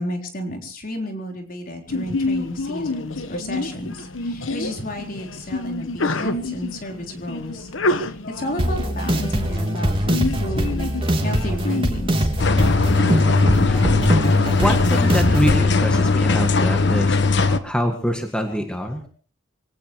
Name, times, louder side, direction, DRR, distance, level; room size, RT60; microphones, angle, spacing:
voice 1, 0.0-7.7 8.3-10.9 11.2-12.3, equal, 45° left, 3 dB, 4.2 m, -32 dB
Sneeze, 1.9-11.9, left 2 dB, 90° left, 1.3 m, -28 dB
sound 1, 8.6-15.6, equal, 30° right, 3.3 m, -22 dB
sound 2, 12.4-17.6, left 3 dB, 65° left, 1.4 m, -19 dB
voice 2, 13.3-13.9 14.6-19.1, equal, 5° left, 4 dB, 1.9 m, -25 dB
24.5 x 18.0 x 3.2 m, 0.39 s
head